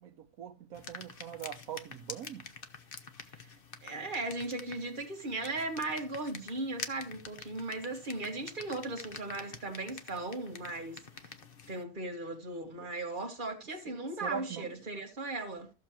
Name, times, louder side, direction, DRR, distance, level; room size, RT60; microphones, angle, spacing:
voice 1, 0.0-2.5 12.8-12.9 13.9-14.8, right 8 dB, 70° right, 1.2 m, -43 dB
sound 1, 0.7-11.8, left 5 dB, 40° left, 1.1 m, -47 dB
voice 2, 3.8-11.3 11.7-15.7, right 2 dB, 35° right, 2.0 m, -37 dB
15.5 x 6.6 x 2.9 m
omnidirectional pair, 1.6 m